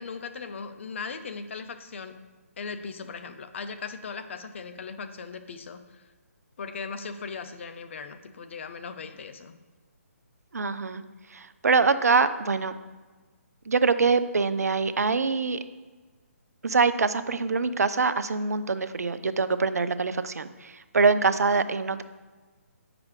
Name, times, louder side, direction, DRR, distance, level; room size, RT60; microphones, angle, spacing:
voice 1, 0.0-2.2 2.6-6.1 6.6-9.6, left 5 dB, 50° left, 10 dB, 0.6 m, -38 dB
voice 2, 10.5-11.0 11.3-12.7 13.7-15.6 16.6-22.0, right 4 dB, 85° right, 12 dB, 0.5 m, -24 dB
8.4 x 4.9 x 3.2 m, 1.3 s
hypercardioid pair, 150°, 8 cm